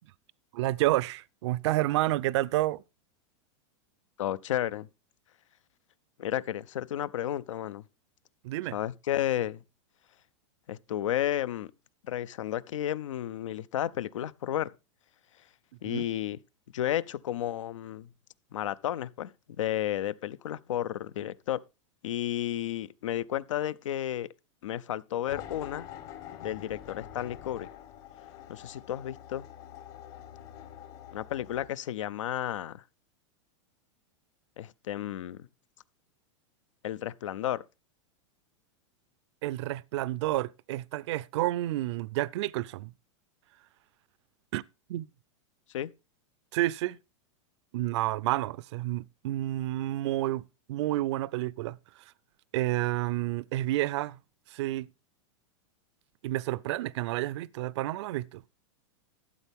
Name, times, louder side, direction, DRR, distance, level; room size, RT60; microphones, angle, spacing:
voice 1, 0.5-2.8 8.4-8.8 15.8-16.0 39.4-42.9 44.5-44.6 44.9-45.1 46.5-47.0 47.7-50.4 50.7-52.0 52.5-54.2 54.5-54.9 56.2-58.4, right 16 dB, 65° right, 0.4 m, -30 dB
voice 2, 4.2-4.9 6.2-7.8 8.7-9.6 10.7-11.7 12.0-14.7 15.8-16.4 16.7-18.1 18.5-21.6 22.0-24.3 24.6-25.9 26.4-27.7 28.5-29.5 31.1-32.8 34.6-35.5 36.8-37.6 45.7-45.9, left 12 dB, 90° left, 0.5 m, -32 dB
sound 1, 25.3-31.7, left 10 dB, 55° left, 1.5 m, -46 dB
12.5 x 8.2 x 3.5 m
supercardioid pair, 140°, 16 cm